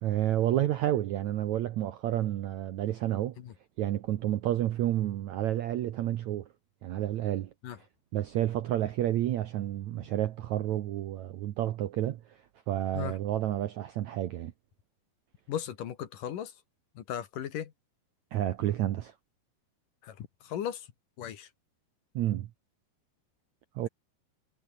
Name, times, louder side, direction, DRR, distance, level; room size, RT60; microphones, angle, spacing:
voice 1, 0.0-3.4 3.8-6.5 6.8-7.5 8.1-14.5 18.3-19.1 22.1-22.5 23.7-23.9, right 13 dB, 70° right, 1.8 m, -30 dB
voice 2, 15.5-16.5 17.0-17.7 20.0-20.9 21.2-21.5, left 10 dB, 60° left, 3.1 m, -37 dB
omnidirectional pair, 4.5 m